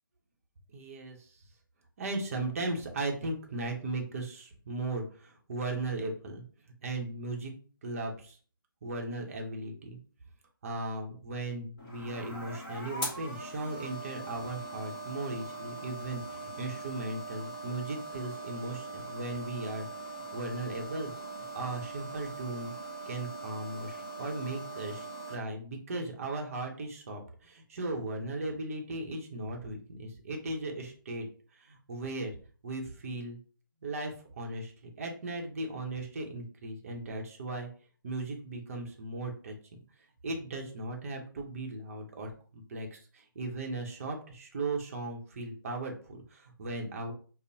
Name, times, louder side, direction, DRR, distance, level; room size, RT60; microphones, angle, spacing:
voice 1, 0.7-1.4 2.0-6.4 6.8-7.5 7.8-8.4 8.8-10.0 10.6-19.9 20.3-21.1 21.5-22.7 23.1-31.3 31.5-32.4 32.6-33.4 33.8-37.7 38.0-39.8 40.2-47.1, right 2 dB, 40° right, 2 dB, 0.8 m, -37 dB
sound 1, 11.8-25.3, right 2 dB, 20° left, 1.3 m, -41 dB
5.1 x 2.1 x 2.7 m, 0.41 s
figure-of-eight pair, 150°, 12 cm